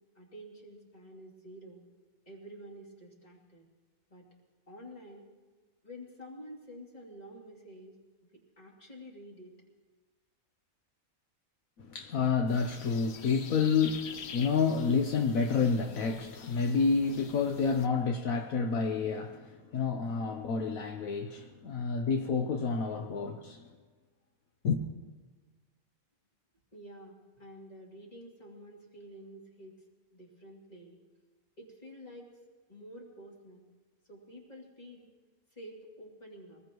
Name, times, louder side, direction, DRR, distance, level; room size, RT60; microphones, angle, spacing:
voice 1, 0.1-1.9 2.3-3.6 4.1-4.3 4.7-5.3 5.8-8.0 8.2-9.5 26.7-29.7 30.1-31.0 31.6-32.3 32.7-33.6 34.1-35.1 35.5-36.6, equal, 30° left, 3.0 m, -49 dB
voice 2, 11.8-23.7 24.6-24.8, left 5 dB, 75° left, 1.3 m, -29 dB
sound 1, 12.5-17.9, left 6 dB, 55° left, 1.0 m, -47 dB
24.5 x 19.5 x 3.1 m
omnidirectional pair, 1.5 m